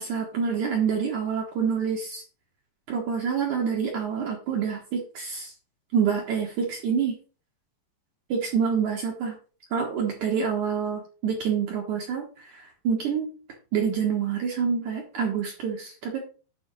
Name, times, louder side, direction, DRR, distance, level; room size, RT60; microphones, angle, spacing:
voice 1, 0.0-2.2 2.9-5.5 5.9-7.2 8.3-9.4 9.7-13.3 13.7-16.2, right 6 dB, 60° right, 0 dB, 2.3 m, -27 dB
9.4 x 4.2 x 6.2 m, 0.37 s
omnidirectional pair, 4.7 m